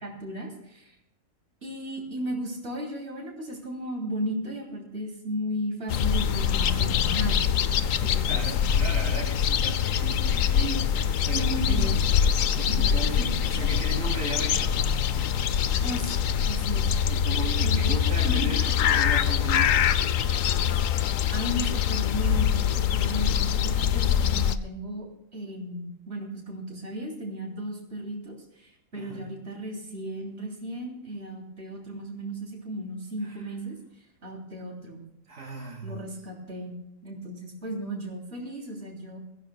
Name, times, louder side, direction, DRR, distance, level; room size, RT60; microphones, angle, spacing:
voice 1, 0.0-1.0 1.6-8.4 11.7-12.0 12.7-13.4 15.8-16.9 17.6-17.9 18.2-18.5 20.7-21.0 21.3-33.8 34.2-35.0 35.8-39.2, right 1 dB, 50° right, -1 dB, 3.4 m, -35 dB
sound 1, 5.9-24.6, left 8 dB, 75° left, 1.1 m, -24 dB
voice 2, 8.3-11.9 12.6-14.8 17.1-20.0 28.9-29.3 33.2-33.5 35.3-36.0, right 2 dB, 70° right, -2 dB, 3.2 m, -36 dB
22.0 x 15.5 x 2.3 m, 0.80 s
omnidirectional pair, 1.4 m